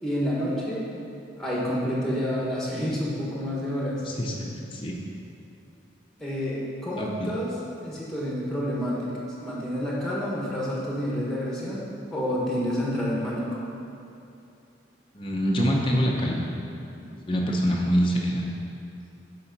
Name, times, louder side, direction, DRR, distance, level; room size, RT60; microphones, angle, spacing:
voice 1, 0.0-0.9 1.4-4.0 6.2-7.5 7.8-9.0 9.4-11.8 12.1-13.5, equal, ahead, -6 dB, 1.2 m, -28 dB
voice 2, 4.0-5.0 7.0-7.3 15.1-16.4 17.3-18.5, equal, 25° left, -2 dB, 0.6 m, -25 dB
7.1 x 4.8 x 5.3 m, 2.8 s
head